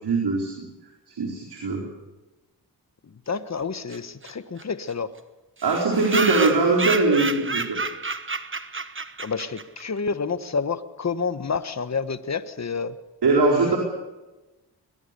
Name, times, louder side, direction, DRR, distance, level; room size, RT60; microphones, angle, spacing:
voice 1, 0.0-0.6 1.1-1.9 5.6-7.8 13.2-13.8, right 3 dB, 80° right, -1 dB, 4.4 m, -21 dB
voice 2, 3.3-5.1 9.2-12.9, left 5 dB, 45° left, 12 dB, 1.3 m, -29 dB
sound 1, 3.9-4.0 4.2-4.3 4.6-4.7 4.9-5.0 5.6-9.8, right 4 dB, 30° right, 1.2 m, -29 dB
22.0 x 21.0 x 6.9 m, 1.1 s
cardioid pair, 60°, 39 cm